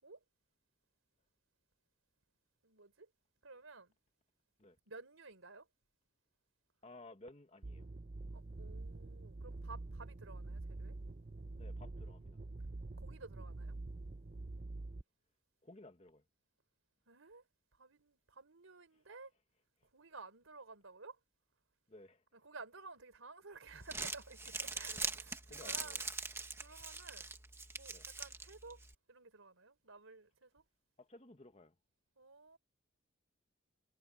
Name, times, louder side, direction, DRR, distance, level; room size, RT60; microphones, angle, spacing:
voice 1, 2.6-3.1 3.4-3.9 4.9-5.7 8.3-10.9 13.0-13.8 17.1-17.4 17.8-19.3 19.9-21.2 22.3-27.4 27.7-28.8 29.1-30.6 32.2-32.6, right 3 dB, 85° right, 3.8 m, -54 dB
voice 2, 6.8-7.9 11.6-12.4 15.6-16.2 21.9-22.2 24.9-25.0 25.5-26.0 27.9-28.1 31.0-31.7, left 2 dB, 30° left, 1.6 m, -56 dB
sound 1, 7.6-15.0, right 2 dB, 40° right, 0.6 m, -46 dB
Crumpling crinkling, 23.7-28.9, right 3 dB, 15° right, 1.4 m, -43 dB
head